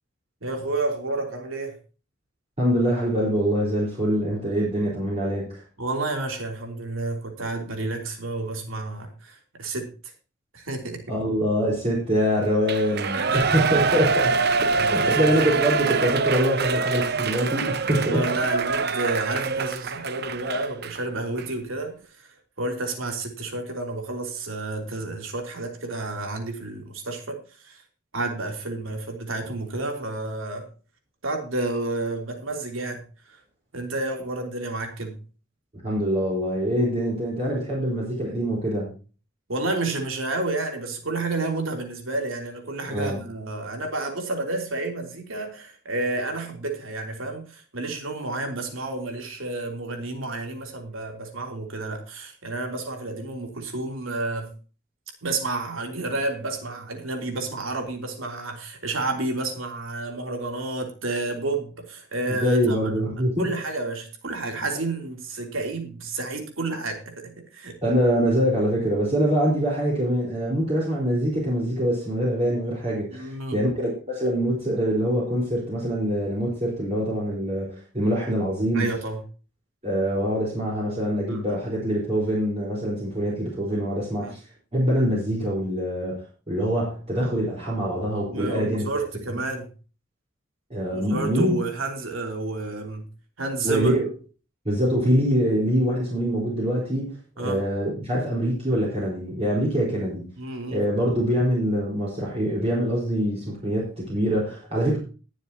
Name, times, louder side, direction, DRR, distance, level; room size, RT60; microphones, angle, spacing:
voice 1, 0.4-1.8 5.8-10.1 10.5-11.0 13.1-13.6 14.7-15.3 18.1-27.8 28.1-30.7 31.2-33.4 33.7-35.2 39.5-54.5 55.2-62.8 63.4-67.8 73.1-73.6 78.7-79.2 81.3-81.6 84.2-84.3 88.3-89.7 90.9-93.1 93.4-93.9 97.4-97.6 100.4-100.8, right 2 dB, 90° right, 3.3 m, -30 dB
voice 2, 2.6-5.6 11.1-18.2 35.8-38.9 42.9-43.2 62.3-63.5 67.8-78.9 79.8-84.4 84.7-89.1 90.7-91.6 93.6-94.1 94.6-97.1 97.4-100.3 100.7-105.0, equal, 30° right, 4.6 m, -24 dB
Shout / Cheering, 12.6-21.0 21.4-21.5, right 5 dB, 55° right, 0.8 m, -25 dB
21.5 x 7.4 x 2.9 m
head